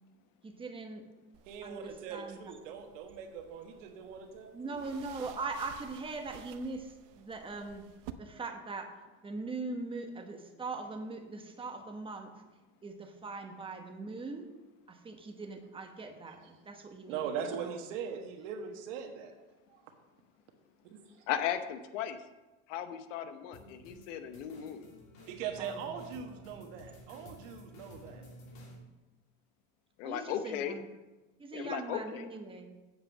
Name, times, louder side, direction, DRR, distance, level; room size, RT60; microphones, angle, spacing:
voice 1, 0.4-1.1 1.6-2.6 4.5-7.9 8.2-8.9 9.2-12.3 12.8-14.5 14.9-17.2 17.5-17.8 25.6-25.9 26.5-26.7 30.0-30.9 31.4-32.8, right 3 dB, 15° right, 4 dB, 1.1 m, -41 dB
sound 1, 1.3-8.1, right 13 dB, 60° right, 0.7 m, -54 dB
voice 2, 1.5-4.8 17.1-19.3 19.7-19.8 20.8-21.2 25.3-28.2, right 7 dB, 85° right, 4 dB, 1.4 m, -41 dB
voice 3, 21.3-22.2 22.7-24.9 30.0-30.8 31.5-32.3, left 9 dB, 85° left, 9 dB, 1.0 m, -36 dB
sound 2, 23.5-28.8, equal, 50° left, 3.0 m, -52 dB
7.9 x 5.3 x 7.3 m, 1.1 s
supercardioid pair, 135°, 36 cm